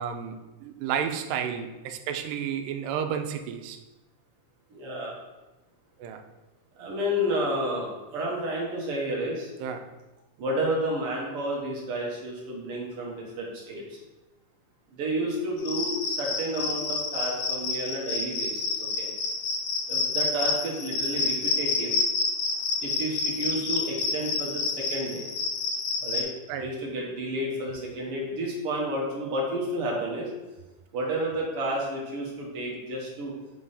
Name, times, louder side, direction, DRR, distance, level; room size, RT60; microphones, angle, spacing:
voice 1, 0.0-3.8 6.0-6.2 9.6-9.9 26.5-26.7, right 8 dB, 85° right, 7 dB, 2.1 m, -32 dB
voice 2, 4.7-5.2 6.8-9.5 10.4-14.0 14.9-19.1 19.9-22.0 22.8-25.2 26.0-26.3 26.6-30.3 30.9-33.4, right 1 dB, 65° right, -3 dB, 1.4 m, -31 dB
Cricket, 15.6-26.2, left 4 dB, 75° left, 2.2 m, -28 dB
5.4 x 3.4 x 5.4 m, 1.1 s
omnidirectional pair, 3.7 m